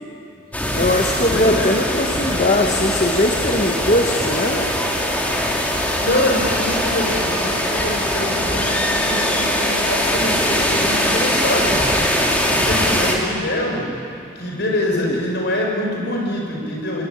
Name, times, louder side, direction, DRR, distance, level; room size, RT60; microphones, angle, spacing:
sound 1, 0.5-13.2, equal, 10° left, 2.8 m, -21 dB
voice 1, 0.7-4.7 14.9-15.2, left 1 dB, 40° left, 2 dB, 1.5 m, -20 dB
voice 2, 1.3-1.7 6.0-11.9 12.5-13.8 14.4-17.0, left 1 dB, 55° left, 0 dB, 6.2 m, -24 dB
27.5 x 21.5 x 9.7 m, 2.7 s
head